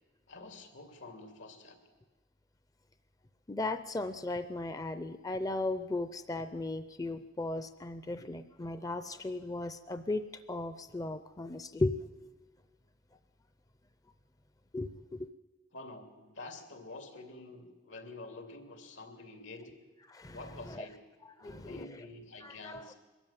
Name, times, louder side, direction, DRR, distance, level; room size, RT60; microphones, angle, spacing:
voice 1, 0.3-1.8 15.7-19.7 20.3-21.0 21.4-22.9, left 2 dB, 85° left, 5 dB, 2.8 m, -48 dB
voice 2, 3.5-12.2 14.7-14.9 20.1-20.9 21.2-21.9 22.4-22.9, left 2 dB, 20° left, 11 dB, 0.5 m, -36 dB
22.5 x 13.5 x 9.1 m, 1.3 s
head